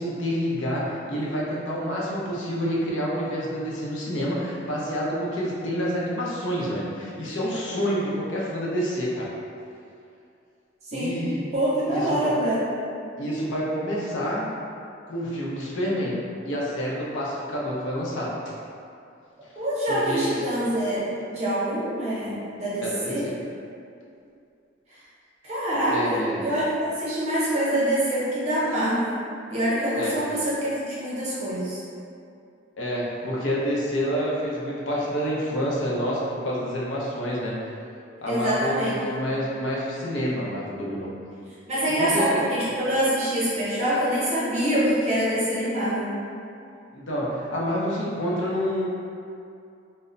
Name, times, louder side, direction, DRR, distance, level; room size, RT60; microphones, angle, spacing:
voice 1, 0.0-9.3 10.9-11.4 11.9-12.3 13.2-14.4 15.1-16.1 16.4-18.3 19.9-20.4 22.8-23.3 25.9-26.4 30.0-30.2 32.8-37.5 38.2-41.1 41.9-42.4 46.9-48.8, equal, 70° left, -5 dB, 0.6 m, -28 dB
voice 2, 11.5-12.6 19.6-23.3 25.4-29.2 29.5-31.8 38.3-39.0 41.7-46.1, right 1 dB, 35° right, -9 dB, 0.7 m, -25 dB
2.1 x 2.1 x 3.7 m, 2.5 s
head